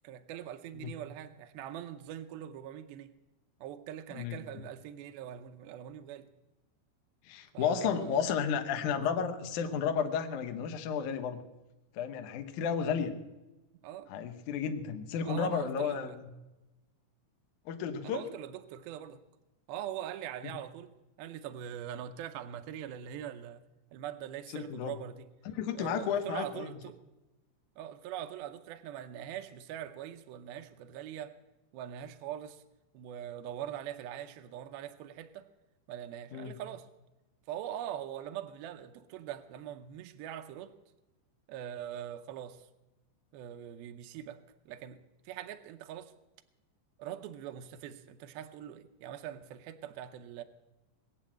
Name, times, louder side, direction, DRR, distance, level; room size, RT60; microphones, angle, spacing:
voice 1, 0.0-3.1 3.6-6.3 7.5-8.3 13.8-14.1 15.3-16.2 18.0-19.2 19.7-20.9 21.2-23.6 23.9-25.3 25.7-27.0 27.8-31.3 31.7-32.6 32.9-35.5 35.9-36.9 37.5-40.7 41.5-42.7 43.3-45.0 45.3-46.1 47.0-50.4, right 10 dB, 80° right, 2.2 m, -42 dB
voice 2, 4.1-4.4 7.2-11.4 11.9-13.1 14.1-16.3 17.6-18.2 20.4-20.5 24.5-24.9 25.4-26.7 36.3-36.5, left 7 dB, 80° left, 1.8 m, -32 dB
21.0 x 7.6 x 8.7 m
omnidirectional pair, 5.2 m